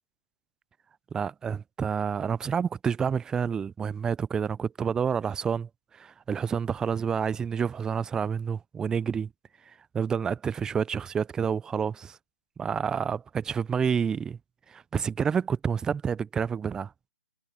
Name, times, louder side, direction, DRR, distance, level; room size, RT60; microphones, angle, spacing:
voice 1, 1.1-9.3 9.7-12.2 12.6-14.4 14.7-16.9, right 7 dB, 10° right, 0.4 m, -29 dB
figure-of-eight pair, 135°, 8 cm